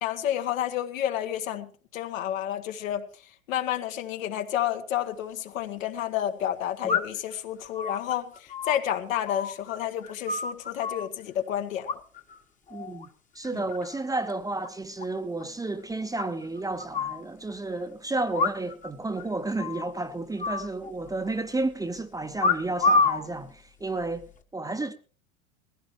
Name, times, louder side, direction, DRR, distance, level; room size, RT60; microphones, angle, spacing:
voice 1, 0.0-3.0 3.5-12.0 13.5-13.6, left 11 dB, 70° left, 1.6 m, -30 dB
sound 1, 5.1-5.2 6.9-7.3 7.7-9.8 10.0-11.1 11.9-12.4 12.7-13.1 13.4-14.0 14.3-14.4 14.6-14.7 15.0-15.1 15.4-15.5 16.2-17.2 18.3-18.9 19.2-19.3 19.6-19.9 20.4-21.3 22.4-23.3 24.0-24.4, left 4 dB, 20° left, 1.2 m, -28 dB
voice 2, 12.7-13.1 13.3-24.9, right 2 dB, 10° right, 0.9 m, -32 dB
20.0 x 16.0 x 3.1 m
hypercardioid pair, 100°, 41 cm